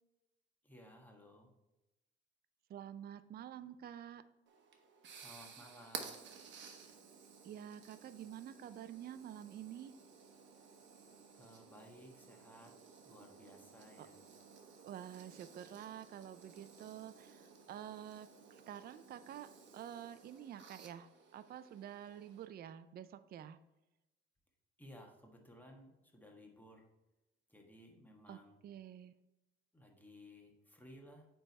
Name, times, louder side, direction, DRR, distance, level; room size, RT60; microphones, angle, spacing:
voice 1, 0.6-1.5 5.1-6.2 11.3-12.7 13.0-14.2 24.8-26.9 27.5-28.6 29.7-31.3, equal, 10° left, 1 dB, 1.3 m, -58 dB
voice 2, 2.7-4.3 7.4-9.9 14.0-14.1 14.8-23.6 28.3-29.2, right 10 dB, 50° right, 12 dB, 0.4 m, -49 dB
sound 1, 4.5-22.5, right 6 dB, 65° right, 1.0 m, -55 dB
8.7 x 3.5 x 4.1 m, 0.96 s
cardioid pair, 90°, 20 cm